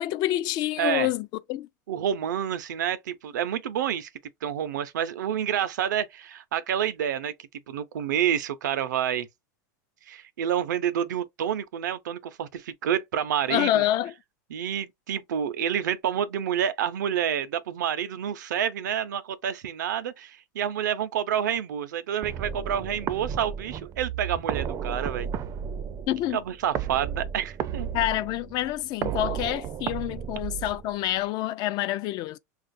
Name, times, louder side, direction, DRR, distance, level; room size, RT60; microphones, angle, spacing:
voice 1, 0.0-1.7 13.5-14.1 26.1-26.4 27.9-32.4, left 14 dB, 45° left, 0.4 m, -27 dB
voice 2, 0.8-1.1 1.9-4.1 4.4-7.3 7.7-9.3 10.1-13.8 14.5-25.3 26.3-27.9, right 9 dB, 85° right, 0.6 m, -28 dB
sound 1, 22.2-31.2, right 8 dB, 35° right, 0.4 m, -33 dB
5.7 x 2.4 x 2.5 m
supercardioid pair, 115°, 9 cm